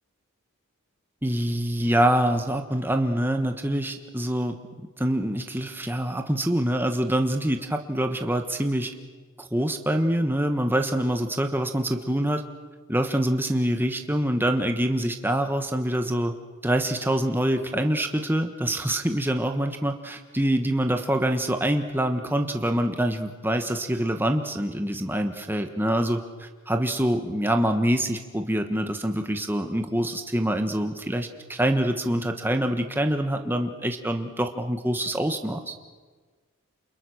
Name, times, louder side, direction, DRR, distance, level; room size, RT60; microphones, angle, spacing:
voice 1, 1.2-4.6 5.0-8.9 9.4-12.4 12.9-16.3 16.6-35.7, right 1 dB, 10° right, 5 dB, 1.3 m, -25 dB
29.0 x 28.0 x 6.5 m, 1.4 s
head